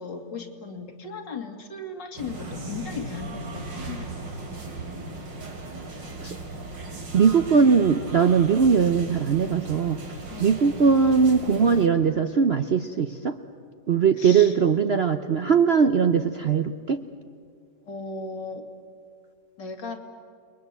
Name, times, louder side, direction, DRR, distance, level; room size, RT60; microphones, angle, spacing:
voice 1, 0.0-4.1 10.3-10.8 14.2-14.5 17.9-18.6 19.6-20.0, left 4 dB, 80° left, 4 dB, 2.9 m, -37 dB
sound 1, 2.2-11.9, right 2 dB, 85° right, 3.5 m, -37 dB
voice 2, 7.1-10.0 10.4-13.4 13.9-17.0, right 6 dB, 55° right, 8 dB, 0.7 m, -20 dB
29.5 x 21.5 x 8.1 m, 2.3 s
omnidirectional pair, 1.9 m